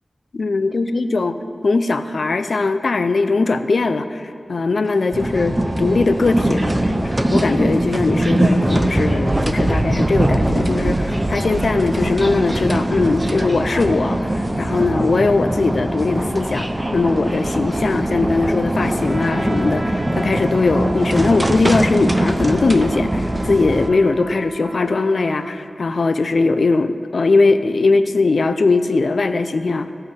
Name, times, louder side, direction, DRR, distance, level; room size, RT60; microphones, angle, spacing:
voice 1, 0.3-1.4 1.6-16.7 16.9-29.9, left 3 dB, 70° left, 10 dB, 0.5 m, -19 dB
sound 1, 4.8-12.8, left 1 dB, 20° left, 2.3 m, -51 dB
sound 2, 5.1-23.9, right 1 dB, 20° right, 0.7 m, -21 dB
Trumpet, 19.0-25.6, right 2 dB, 50° right, 0.8 m, -38 dB
14.0 x 5.6 x 7.9 m, 2.8 s
wide cardioid pair, 70°, 0 cm